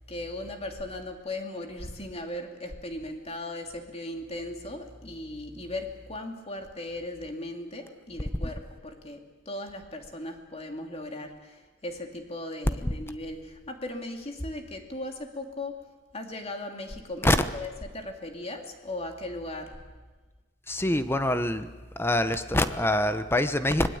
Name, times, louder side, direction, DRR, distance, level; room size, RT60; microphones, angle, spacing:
voice 1, 0.1-15.8 16.1-19.8, left 1 dB, 30° left, 3 dB, 2.9 m, -37 dB
voice 2, 20.7-21.7 22.0-23.9, left 1 dB, 10° left, 10 dB, 1.0 m, -25 dB
25.0 x 20.0 x 8.8 m, 1.3 s
head